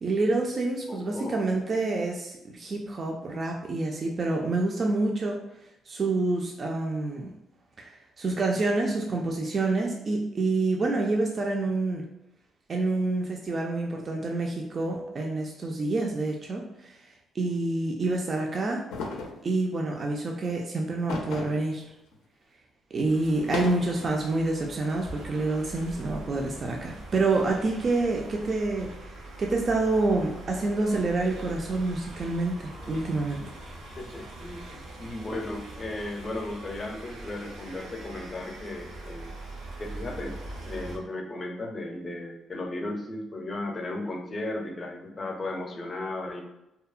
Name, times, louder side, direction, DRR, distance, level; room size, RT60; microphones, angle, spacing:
voice 1, 0.0-5.4 5.9-7.3 7.8-12.0 12.7-17.0 17.3-18.8 19.4-21.8 22.9-33.5, right 2 dB, 45° right, 0 dB, 0.3 m, -27 dB
voice 2, 0.9-1.5 34.0-39.3 39.8-40.4 40.6-46.4, left 2 dB, 35° left, 2 dB, 0.5 m, -35 dB
sound 1, 18.9-19.4 21.1-21.7 22.1-22.2 23.3-24.1, left 3 dB, 90° left, 0.4 m, -34 dB
sound 2, 23.0-41.0, right 1 dB, 85° right, 0.7 m, -43 dB
2.7 x 2.0 x 2.4 m, 0.88 s
cardioid pair, 90°, 0 cm